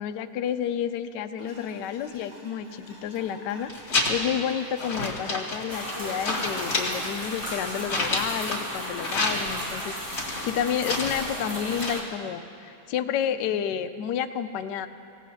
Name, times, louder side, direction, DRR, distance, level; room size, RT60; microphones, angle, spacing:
voice 1, 0.0-14.9, left 9 dB, 75° left, 8 dB, 1.0 m, -30 dB
sound 1, 1.4-8.5, equal, 40° right, 4.5 m, -48 dB
sound 2, 3.6-4.4 4.8-6.0 6.2-8.7 9.0-9.7 10.1-11.3 11.7-11.9, left 2 dB, 45° left, 2.6 m, -29 dB
sound 3, 5.7-12.0, equal, 15° right, 1.9 m, -35 dB
26.5 x 16.5 x 2.8 m, 2.7 s
omnidirectional pair, 2.4 m